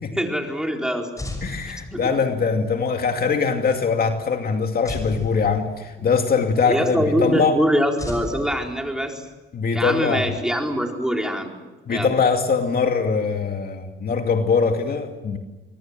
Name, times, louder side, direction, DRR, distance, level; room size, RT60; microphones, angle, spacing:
voice 1, 0.1-1.1 1.9-2.1 6.6-9.3 9.7-11.5 11.9-12.1, equal, 5° right, 4.4 m, -23 dB
sound 1, 1.2-2.4 4.8-6.1 8.0-9.3, left 1 dB, 15° left, 6.3 m, -34 dB
voice 2, 1.4-7.6 9.5-10.3 11.9-15.4, left 5 dB, 50° left, 2.5 m, -22 dB
26.0 x 22.5 x 7.6 m
cardioid pair, 90°, 20 cm